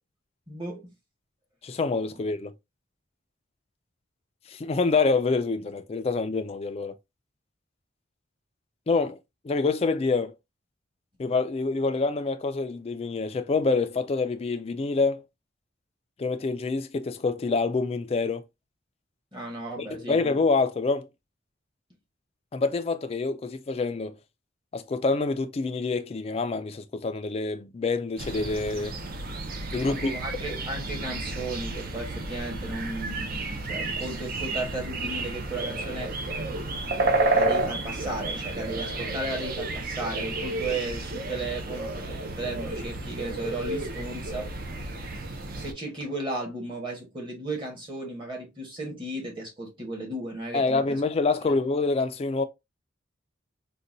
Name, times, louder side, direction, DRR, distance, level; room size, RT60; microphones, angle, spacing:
voice 1, 0.5-0.9 19.3-20.2 29.8-33.3 33.6-36.1 37.3-44.5 44.8-44.9 45.5-51.0, right 2 dB, 25° right, 1.2 m, -35 dB
voice 2, 1.6-2.5 4.5-7.0 8.9-9.2 9.4-10.3 11.2-15.2 16.2-18.4 19.9-21.1 22.5-24.2 24.7-29.0 29.7-30.1 50.5-52.4, left 3 dB, 30° left, 0.3 m, -26 dB
sound 1, 28.2-45.7, right 2 dB, 45° right, 0.5 m, -31 dB
3.9 x 2.2 x 2.6 m
head